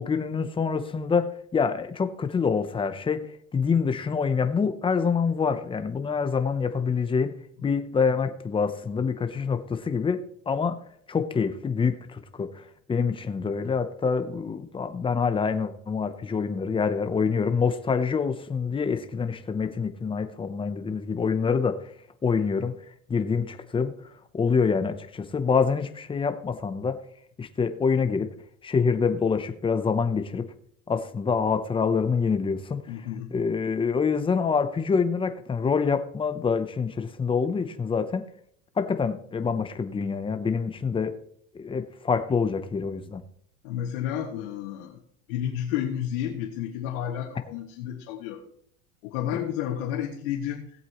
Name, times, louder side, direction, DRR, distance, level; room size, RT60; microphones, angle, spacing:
voice 1, 0.0-3.3 3.5-7.3 7.6-10.8 11.1-21.8 22.2-22.7 23.1-23.9 24.3-27.0 27.4-28.3 28.6-30.5 30.9-32.9 33.3-38.2 38.8-41.2 41.5-43.2, left 5 dB, 15° left, 0.7 m, -26 dB
voice 2, 32.9-33.3 43.6-45.0 45.3-48.4 49.0-50.6, left 10 dB, 90° left, 1.9 m, -31 dB
17.5 x 8.1 x 3.0 m
cardioid pair, 140°, 40 cm